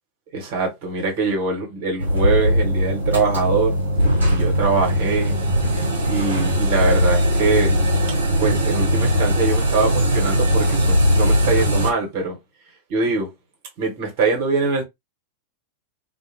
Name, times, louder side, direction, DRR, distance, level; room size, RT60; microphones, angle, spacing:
voice 1, 0.3-3.8 4.3-5.4 6.0-7.8 8.4-12.4 12.9-13.3 13.8-14.8, right 4 dB, 50° right, 1.2 m, -23 dB
sound 1, 2.0-11.9, equal, 75° right, 0.8 m, -19 dB
2.4 x 2.2 x 2.7 m
figure-of-eight pair, 90°, 0 cm